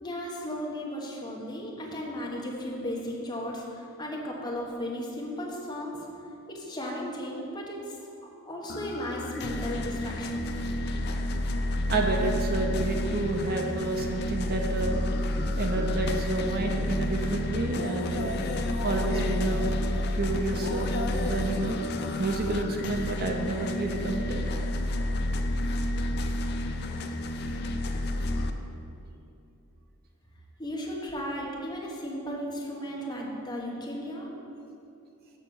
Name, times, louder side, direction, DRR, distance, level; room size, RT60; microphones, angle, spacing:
voice 1, 0.0-6.1 6.5-8.0 8.5-10.5 30.6-34.3, equal, 20° left, -3 dB, 1.3 m, -35 dB
sound 1, 8.7-28.5, left 1 dB, 50° left, 0.5 m, -30 dB
voice 2, 11.9-15.0 15.6-18.3 18.8-19.8 20.1-21.8 22.2-24.4, right 2 dB, 45° right, 2 dB, 0.7 m, -29 dB
6.7 x 6.2 x 7.0 m, 2.7 s
head